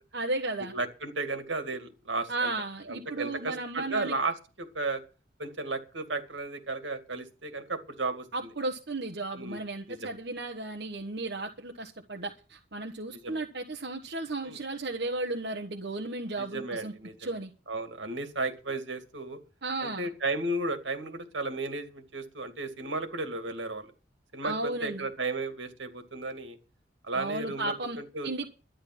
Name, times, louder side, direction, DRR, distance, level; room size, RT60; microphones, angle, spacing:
voice 1, 0.1-0.7 2.3-4.1 8.3-16.9 17.2-17.5 19.6-20.1 24.4-25.1 27.1-28.0 28.2-28.4, right 2 dB, 65° right, 1.3 m, -34 dB
voice 2, 0.7-2.5 2.9-5.0 5.4-8.5 9.3-9.6 9.9-10.2 13.1-13.4 14.4-14.6 16.4-17.1 17.7-19.4 19.8-23.9 24.3-26.6 27.0-28.4, right 2 dB, 85° right, 2.3 m, -34 dB
12.5 x 10.0 x 6.0 m
head